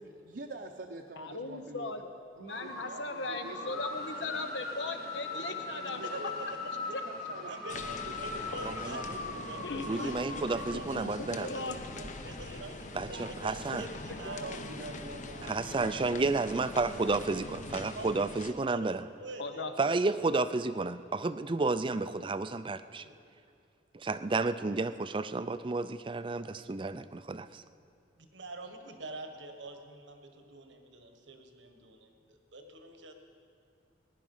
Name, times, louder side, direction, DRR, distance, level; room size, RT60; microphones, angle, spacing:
voice 1, 0.3-1.9 2.4-3.8 5.4-6.3 6.9-10.1 10.9-12.1 13.1-13.6 14.0-15.6, right 2 dB, 65° right, 1 dB, 0.8 m, -47 dB
voice 2, 1.2-2.1 2.4-6.0 6.9-7.0 9.6-10.1 10.4-11.9 13.7-13.8 14.1-14.2 14.6-14.7 19.4-19.7, left 3 dB, 80° left, 7 dB, 1.1 m, -39 dB
sound 1, 2.5-10.7, left 3 dB, 60° left, 2.0 m, -40 dB
voice 3, 6.0-6.5 7.4-7.8 8.1-9.0 9.5-11.6 12.2-14.6 15.9-16.3 17.0-17.2 17.7-18.9 19.2-19.9 23.0-23.1 28.3-33.1, right 2 dB, 85° right, 5 dB, 1.4 m, -46 dB
sound 2, 7.7-18.5, left 2 dB, 40° left, 0.8 m, -43 dB
voice 4, 8.6-9.0 9.9-11.5 12.9-13.8 15.4-19.0 19.8-23.0 23.9-27.6, right 3 dB, 30° right, 13 dB, 0.4 m, -31 dB
20.0 x 10.5 x 5.5 m, 2.5 s
head